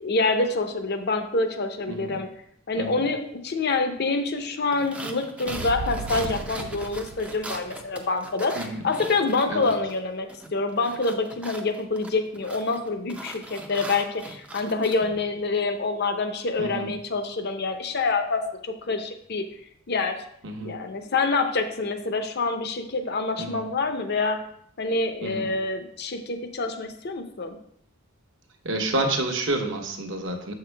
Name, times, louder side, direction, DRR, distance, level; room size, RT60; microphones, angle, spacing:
voice 1, 0.0-2.3 2.7-19.4 19.9-20.2 20.6-24.4 24.8-27.6, left 3 dB, 50° left, 7 dB, 0.6 m, -26 dB
voice 2, 1.9-2.2 2.8-3.0 6.1-6.3 8.6-8.8 9.5-9.7 16.6-17.0 20.4-20.8 23.4-23.6 25.2-25.5 28.6-30.5, right 2 dB, 60° right, 3 dB, 1.0 m, -29 dB
sound 1, 4.7-10.0 10.3-15.0, right 1 dB, 5° right, 0.5 m, -40 dB
Fire, 5.5-7.9, right 4 dB, 75° right, 0.5 m, -35 dB
7.2 x 5.7 x 3.3 m, 0.69 s
head